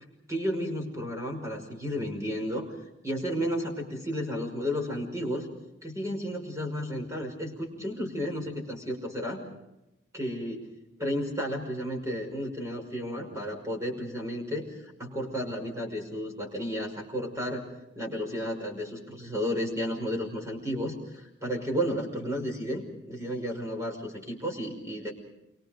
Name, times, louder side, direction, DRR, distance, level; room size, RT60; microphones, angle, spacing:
voice 1, 0.3-2.7 3.0-5.5 5.8-9.4 10.1-10.7 11.0-14.7 15.0-17.6 18.0-25.1, equal, 15° right, 2 dB, 5.5 m, -32 dB
28.5 x 24.5 x 5.2 m, 0.90 s
head